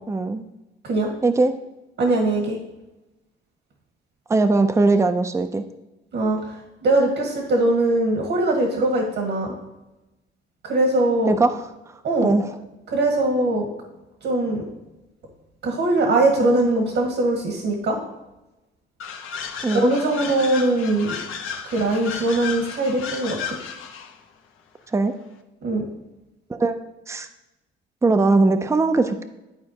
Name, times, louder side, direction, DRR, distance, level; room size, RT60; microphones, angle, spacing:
voice 1, 0.1-0.4 1.2-1.5 4.3-5.6 11.3-11.6 12.2-12.5 19.6-19.9 24.9-25.1 26.5-26.7 27.1-27.3 28.0-29.2, right 3 dB, 15° right, 8 dB, 0.5 m, -20 dB
voice 2, 2.0-2.6 6.1-9.5 10.6-11.4 12.0-12.3 12.9-13.7 14.2-14.6 15.6-18.0 19.7-21.1 21.7-23.6 25.6-25.8, right 2 dB, 70° right, 1 dB, 1.6 m, -21 dB
sound 1, 19.0-24.2, left 6 dB, 75° left, 0.8 m, -33 dB
11.5 x 4.3 x 2.9 m, 1.0 s
cardioid pair, 100°, 21 cm